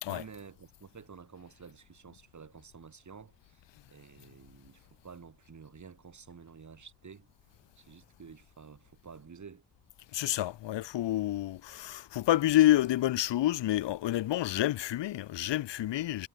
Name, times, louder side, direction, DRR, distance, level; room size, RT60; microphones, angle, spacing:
voice 1, 0.1-3.6 3.9-7.3 7.8-9.6, right 6 dB, 40° right, 4.1 m, -51 dB
voice 2, 10.1-16.3, left 14 dB, 80° left, 0.9 m, -28 dB
cardioid pair, 100°, 43 cm